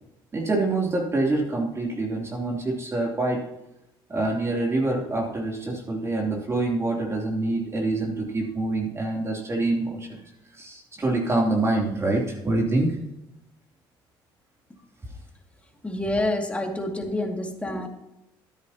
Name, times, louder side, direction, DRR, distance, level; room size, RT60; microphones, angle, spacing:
voice 1, 0.3-3.4 4.1-10.2 10.6-12.9, right 2 dB, 25° right, -1 dB, 3.2 m, -26 dB
voice 2, 15.8-17.9, left 1 dB, 10° left, 2 dB, 2.3 m, -27 dB
12.5 x 10.0 x 2.9 m, 0.88 s
supercardioid pair, 80°, 10 cm